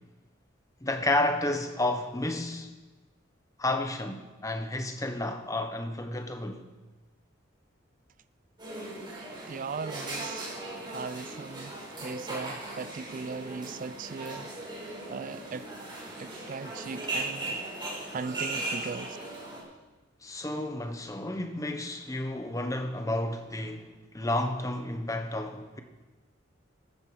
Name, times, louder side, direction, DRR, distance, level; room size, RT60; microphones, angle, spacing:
voice 1, 0.8-2.7 3.6-6.7 20.2-23.9 24.1-25.8, left 1 dB, 15° left, 1.0 m, -31 dB
sound 1, 8.6-19.6, right 2 dB, 25° right, 4.9 m, -38 dB
voice 2, 9.5-10.5 10.9-11.8 12.0-14.5 15.1-15.6 16.2-17.6 18.1-19.2, right 5 dB, 45° right, 0.3 m, -38 dB
13.5 x 13.0 x 4.9 m
head